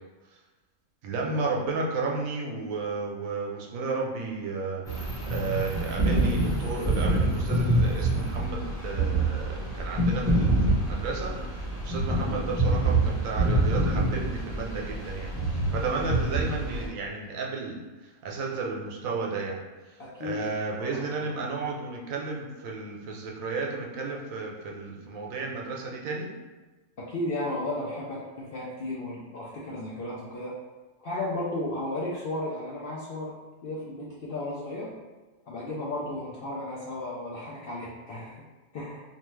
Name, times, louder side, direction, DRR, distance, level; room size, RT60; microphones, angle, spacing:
voice 1, 1.0-11.4 11.8-19.6 19.9-26.3, right 3 dB, 80° right, -1 dB, 1.0 m, -33 dB
sound 1, 4.8-16.9, right 2 dB, 5° left, 0.8 m, -26 dB
voice 2, 15.8-16.2 20.0-20.5 20.7-21.3 27.0-30.5 31.0-33.4 33.6-34.9 35.5-38.4 38.7-39.0, left 1 dB, 65° left, -6 dB, 0.6 m, -34 dB
2.7 x 2.2 x 3.1 m, 1.2 s
omnidirectional pair, 1.4 m